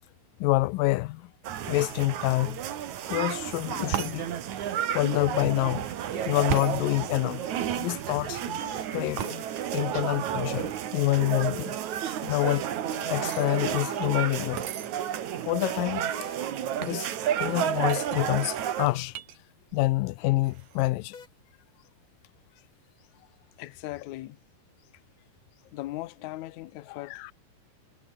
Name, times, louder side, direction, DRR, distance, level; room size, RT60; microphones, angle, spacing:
voice 1, 0.4-1.3 1.7-2.6 3.1-4.3 4.9-5.9 6.3-7.5 7.8-8.4 8.9-9.3 9.7-11.8 12.3-12.6 13.1-14.7 15.4-16.0 16.8-17.1 17.4-19.2 19.7-21.2, left 20 dB, 90° left, 2.3 m, -27 dB
sound 1, 1.4-18.9, right 10 dB, 65° right, 2.9 m, -32 dB
sound 2, 3.8-4.3 6.1-7.0 8.5-9.7 12.2-14.2 16.0-16.5 18.8-19.3 21.1-21.3, left 5 dB, 50° left, 4.5 m, -43 dB
sound 3, 3.9-4.2 6.5-6.8 9.2-9.4 12.5-13.5 14.6-14.9 15.6-15.7 15.9-16.3 16.8-17.0 17.9-19.4 19.7-20.1 20.4-20.9, right 11 dB, 90° right, 3.3 m, -36 dB
voice 2, 23.6-24.4 25.7-27.3, left 17 dB, 70° left, 2.0 m, -38 dB
omnidirectional pair, 3.9 m